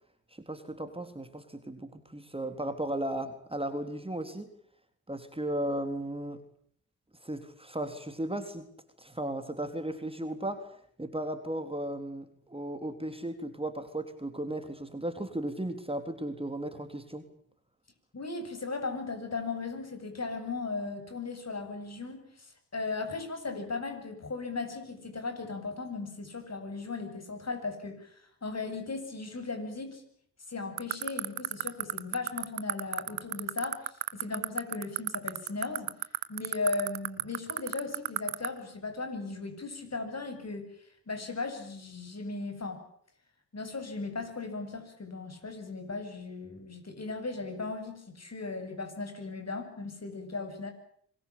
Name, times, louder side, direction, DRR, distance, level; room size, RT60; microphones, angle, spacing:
voice 1, 0.4-4.5 5.1-6.4 7.2-8.7 9.0-10.7 11.0-17.2, right 1 dB, 15° right, 7 dB, 3.8 m, -35 dB
voice 2, 18.1-30.0 30.5-35.9 36.3-40.7 41.1-42.8 43.5-50.7, left 3 dB, 40° left, 7 dB, 8.0 m, -37 dB
sound 1, 30.8-38.5, right 18 dB, 85° right, 1.5 m, -28 dB
25.5 x 20.5 x 8.7 m, 0.63 s
hypercardioid pair, 45°, 39 cm